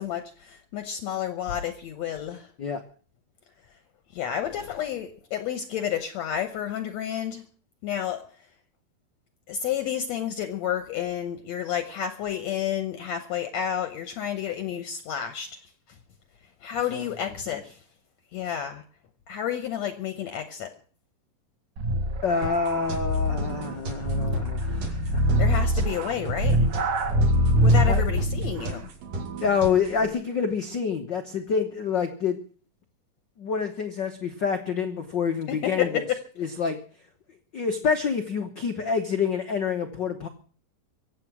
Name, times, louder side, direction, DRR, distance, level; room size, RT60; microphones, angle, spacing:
voice 1, 0.0-2.5 4.1-7.5 7.8-8.2 9.5-15.6 16.6-17.8 18.3-18.8 19.3-20.8 25.4-26.7 27.6-28.9 35.5-36.2, left 9 dB, 70° left, 9 dB, 1.8 m, -30 dB
sound 1, 21.8-28.6, equal, 60° right, 2.8 m, -24 dB
voice 2, 22.2-25.4 27.8-28.0 29.4-32.4 33.4-35.9 36.4-36.8 37.5-40.3, left 6 dB, 85° left, 5 dB, 0.9 m, -27 dB
sound 2, 22.4-30.1, right 3 dB, 75° right, 4.2 m, -36 dB
23.5 x 8.2 x 6.1 m, 0.41 s
omnidirectional pair, 3.9 m